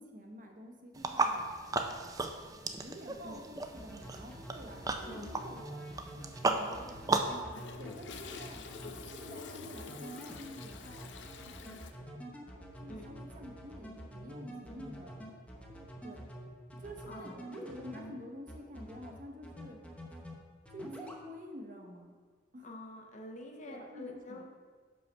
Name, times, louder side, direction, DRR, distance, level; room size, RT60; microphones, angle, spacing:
voice 1, 0.0-1.4 2.8-5.9 6.7-6.9 7.8-8.6 9.1-11.1 11.4-11.8 12.8-15.2 16.0-16.3 16.8-19.8 20.7-22.1 22.5-22.7 23.6-24.4, equal, 45° right, 2 dB, 0.9 m, -48 dB
sound 1, 0.9-7.4, right 3 dB, 20° right, 0.4 m, -35 dB
sound 2, 3.7-18.1 18.5-19.1 19.4-20.3 20.6-21.2, right 1 dB, 5° left, 0.8 m, -47 dB
voice 2, 5.1-5.4 6.5-7.3 12.9-13.1 14.7-15.0 17.1-17.5 22.6-24.5, left 1 dB, 40° left, 2 dB, 0.8 m, -47 dB
Toilet flush, 6.6-11.9, left 5 dB, 70° left, 0.5 m, -48 dB
5.6 x 5.5 x 5.4 m, 1.5 s
head